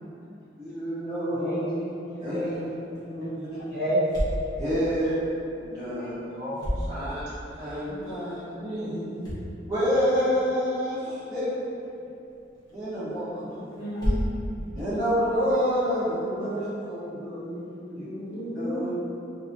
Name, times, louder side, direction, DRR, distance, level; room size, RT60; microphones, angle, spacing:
voice 1, 0.6-1.8 2.2-2.6 3.1-3.5 4.6-5.2 5.6-6.1 6.9-7.2 7.6-9.3 9.7-11.5 12.7-13.8 14.7-17.2 17.9-18.0 18.5-18.9, equal, 15° right, -17 dB, 0.7 m, -28 dB
voice 2, 1.3-3.3 3.7-4.1 4.5-4.8 5.9-7.2 7.8-9.2 11.1-11.3 13.3-14.1 14.5-14.8 16.4-16.7, equal, 55° left, -10 dB, 0.8 m, -34 dB
sound 1, 2.3-15.9, equal, 20° left, 0.5 m, -37 dB
voice 3, 13.8-14.1 16.2-16.6 17.2-18.9, equal, 85° left, -10 dB, 1.0 m, -35 dB
2.7 x 2.3 x 2.5 m, 2.7 s
head